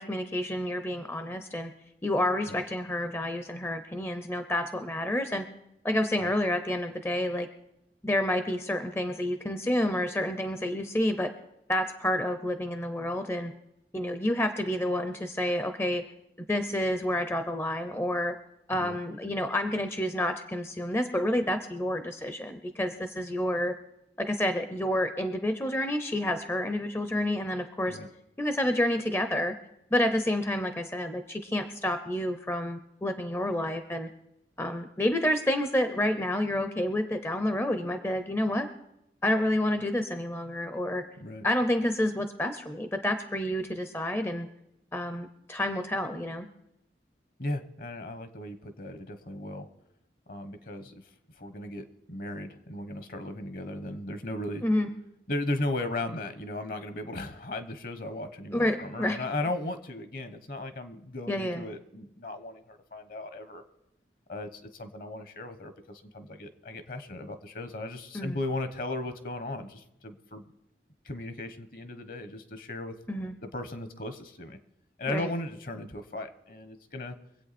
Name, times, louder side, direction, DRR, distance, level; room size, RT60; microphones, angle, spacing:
voice 1, 0.0-1.7 2.0-5.5 5.8-7.5 8.0-11.3 11.7-13.5 13.9-16.0 16.4-18.4 18.7-23.7 24.2-28.0 28.4-29.5 29.9-34.1 34.6-38.7 39.2-41.0 41.4-44.5 44.9-46.5 54.6-54.9 58.5-59.2 61.3-61.7 68.1-68.4 73.1-73.3 75.1-75.3, left 1 dB, 15° left, 8 dB, 0.6 m, -29 dB
voice 2, 47.4-49.7 50.3-51.0 51.4-54.6 55.3-63.6 64.3-70.4 71.0-72.9 73.5-74.6 75.0-77.2, left 2 dB, 50° left, 9 dB, 1.1 m, -36 dB
24.5 x 8.4 x 4.2 m, 0.84 s
head